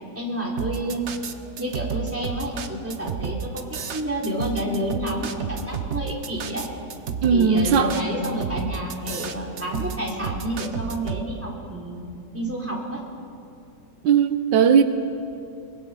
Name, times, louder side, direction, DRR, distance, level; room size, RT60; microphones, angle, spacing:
voice 1, 0.1-1.0 1.6-6.7 7.3-12.1 12.3-13.0, right 1 dB, 5° right, -3 dB, 3.3 m, -29 dB
sound 1, 0.6-11.2, right 6 dB, 50° right, 1.0 m, -31 dB
voice 2, 7.2-8.0 14.0-14.8, right 7 dB, 85° right, 9 dB, 1.6 m, -18 dB
23.0 x 23.0 x 5.5 m, 2.6 s
omnidirectional pair, 2.0 m